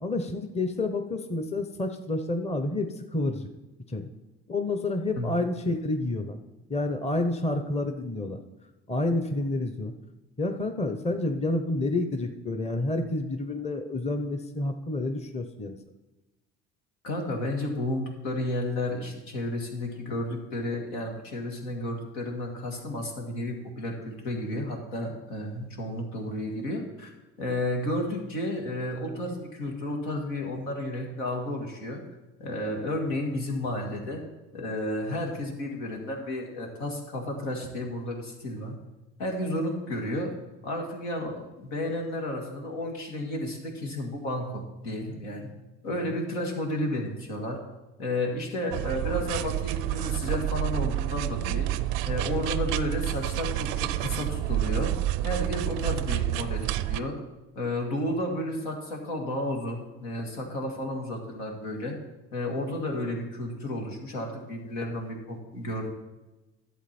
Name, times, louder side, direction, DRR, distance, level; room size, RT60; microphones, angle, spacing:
voice 1, 0.0-3.5 3.9-4.1 4.5-6.4 6.7-8.4 8.9-9.9 10.4-15.8 46.0-46.2, left 2 dB, 20° left, 6 dB, 0.9 m, -29 dB
voice 2, 17.0-27.1 27.4-32.0 32.4-34.2 34.5-38.7 39.2-40.3 40.6-45.5 45.8-47.6 48.0-51.7 52.1-54.9 55.2-57.2 57.6-62.0 62.3-65.9, left 1 dB, 85° left, 1 dB, 2.0 m, -32 dB
sound 1, 48.7-57.0, right 14 dB, 75° right, 0.5 m, -29 dB
11.0 x 7.6 x 4.4 m, 1.1 s
hypercardioid pair, 70°, 34 cm